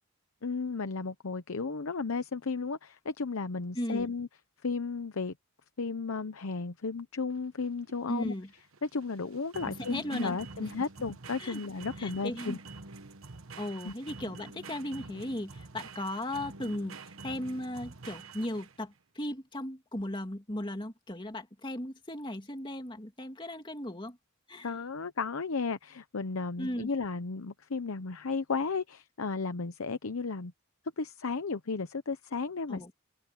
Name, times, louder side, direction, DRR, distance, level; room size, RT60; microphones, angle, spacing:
voice 1, 0.4-4.3 4.6-5.3 5.8-8.3 8.8-12.6 13.8-13.9 24.6-30.5 31.0-32.9, left 4 dB, 75° left, 0.8 m, -34 dB
voice 2, 3.7-4.1 8.1-8.5 9.9-10.7 11.4-11.6 12.0-12.6 13.6-16.9 17.2-24.2 24.5-24.7 26.6-26.9 32.7-32.9, left 1 dB, 20° left, 2.7 m, -36 dB
sound 1, 7.3-18.9, right 4 dB, 70° right, 1.3 m, -47 dB
open air
head